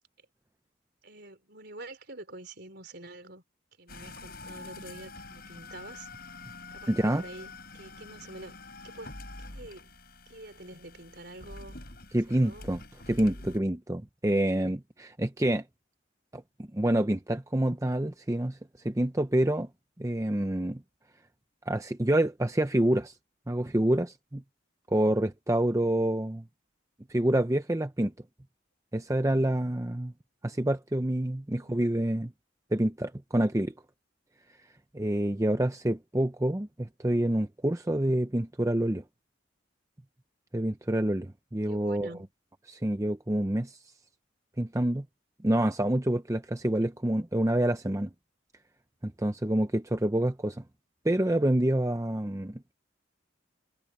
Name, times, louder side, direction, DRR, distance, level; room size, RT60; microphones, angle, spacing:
voice 1, 1.0-3.4 3.8-6.1 6.4-8.6 8.8-9.1 9.4-9.9 10.3-11.8 12.3-12.7 31.6-31.8 41.7-42.3, right 2 dB, 55° right, 4.4 m, -46 dB
sound 1, 3.9-13.6, left 3 dB, 50° left, 6.8 m, -46 dB
voice 2, 6.9-7.2 12.1-12.8 13.1-15.6 16.3-18.6 18.8-19.7 20.0-20.8 21.7-23.1 23.5-24.4 24.9-26.4 27.1-28.1 28.9-30.1 30.4-32.3 32.7-33.7 34.9-39.0 40.5-42.1 42.7-43.8 44.6-45.0 45.4-48.1 49.0-50.6 51.0-52.6, right 1 dB, 15° right, 0.6 m, -27 dB
head